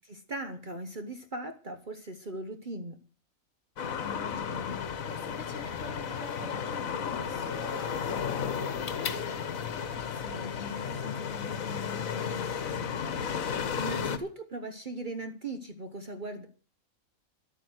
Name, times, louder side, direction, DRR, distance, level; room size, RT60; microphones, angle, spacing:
voice 1, 0.1-3.0 13.8-16.5, right 2 dB, 40° right, 8 dB, 1.2 m, -38 dB
sound 1, 3.8-14.2, left 7 dB, 85° left, 1.5 m, -33 dB
voice 2, 4.0-13.0, left 3 dB, 50° left, 5 dB, 4.2 m, -45 dB
11.5 x 9.0 x 8.0 m, 0.38 s
omnidirectional pair, 1.4 m